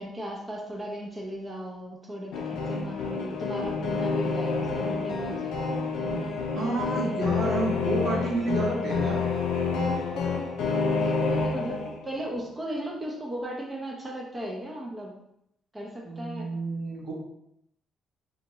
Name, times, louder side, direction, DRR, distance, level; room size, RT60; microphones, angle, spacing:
voice 1, 0.0-5.9 10.9-15.2 15.7-16.5, equal, 15° right, -2 dB, 0.5 m, -36 dB
sound 1, 2.3-12.1, left 4 dB, 90° left, 0.4 m, -28 dB
voice 2, 6.5-9.2 16.0-17.1, right 3 dB, 65° right, -3 dB, 0.9 m, -30 dB
2.8 x 2.2 x 2.9 m, 0.77 s
cardioid pair, 90°, 0 cm